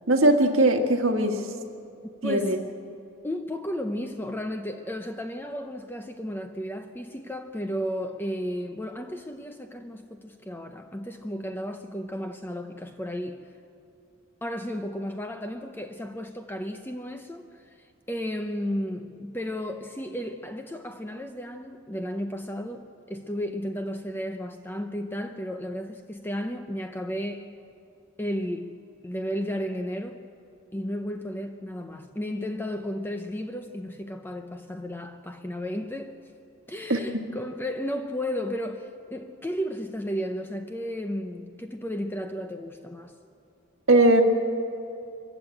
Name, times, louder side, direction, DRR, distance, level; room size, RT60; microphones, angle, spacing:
voice 1, 0.1-1.5 2.2-2.6 36.9-37.0 43.9-44.2, right 1 dB, 65° right, 1.8 m, -20 dB
voice 2, 2.2-2.6 3.2-13.5 14.4-27.6 28.2-30.3 30.7-36.2 36.7-43.1, equal, 10° left, 0.7 m, -33 dB
24.0 x 15.0 x 8.9 m
head